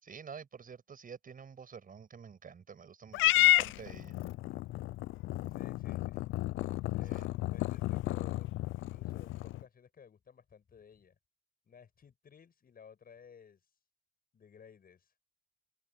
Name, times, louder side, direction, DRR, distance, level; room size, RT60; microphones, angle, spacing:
voice 1, 0.0-4.2 7.1-7.3, right 6 dB, 45° right, 6.9 m, -49 dB
Purr / Meow, 3.1-9.6, left 17 dB, 85° left, 0.5 m, -31 dB
voice 2, 5.5-6.2 6.9-8.5 8.7-11.2 11.7-13.8 14.3-15.1, left 7 dB, 50° left, 7.6 m, -57 dB
cardioid pair, 90°, 20 cm